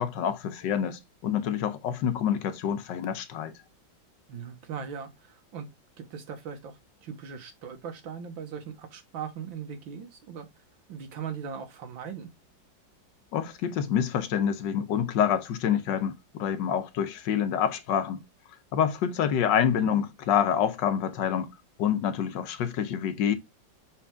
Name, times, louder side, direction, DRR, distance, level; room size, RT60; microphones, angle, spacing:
voice 1, 0.0-3.5 13.3-18.2 18.7-21.5 21.8-23.4, left 8 dB, 75° left, 1.5 m, -27 dB
voice 2, 4.3-5.7 6.0-10.5 10.9-12.3 19.8-19.9, right 7 dB, 90° right, 2.0 m, -39 dB
6.2 x 4.3 x 3.6 m
omnidirectional pair, 2.0 m